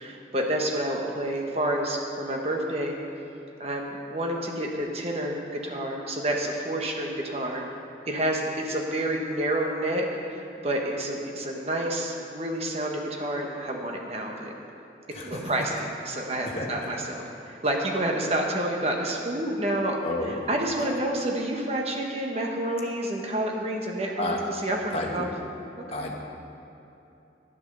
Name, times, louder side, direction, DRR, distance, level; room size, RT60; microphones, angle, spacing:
voice 1, 0.0-3.0 3.6-7.6 8.1-14.5 15.2-20.0 20.2-25.3 25.8-26.1, right 1 dB, 35° right, 1 dB, 1.3 m, -29 dB
voice 2, 15.1-15.5 16.6-16.7 20.0-20.4 24.2-24.4 24.9-25.3 25.9-26.1, left 1 dB, 35° left, -1 dB, 1.3 m, -31 dB
11.5 x 8.2 x 6.7 m, 2.9 s
head